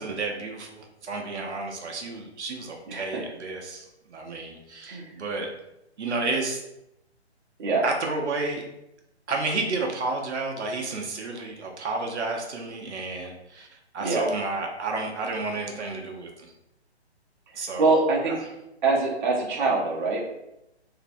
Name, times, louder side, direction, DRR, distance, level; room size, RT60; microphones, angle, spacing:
voice 1, 0.0-5.5 6.0-6.6 7.8-8.6 9.3-13.7 13.9-16.5 17.5-17.9, right 3 dB, 85° right, 1 dB, 0.6 m, -31 dB
voice 2, 2.9-3.2 4.9-5.1 7.6-7.8 14.0-14.3 17.8-18.4 18.8-20.2, right 3 dB, 45° right, -2 dB, 0.6 m, -24 dB
2.6 x 2.0 x 2.5 m, 0.87 s
hypercardioid pair, 150°, 33 cm